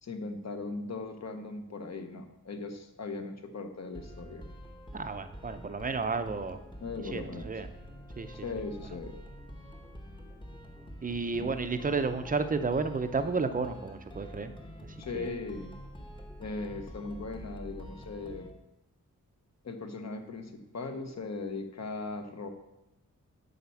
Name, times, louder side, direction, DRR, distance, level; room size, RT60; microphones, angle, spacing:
voice 1, 0.0-4.4 6.8-7.5 8.4-9.2 11.4-11.5 15.0-15.7 16.4-18.5 19.6-22.5, left 3 dB, 50° left, 6 dB, 1.0 m, -39 dB
sound 1, 3.9-18.5, equal, 15° left, 1.0 m, -47 dB
voice 2, 4.9-6.6 7.1-7.7 8.2-8.3 11.0-14.5 15.1-15.3, right 4 dB, 25° right, 9 dB, 0.5 m, -32 dB
9.0 x 4.3 x 7.0 m, 0.94 s
wide cardioid pair, 155°, 34 cm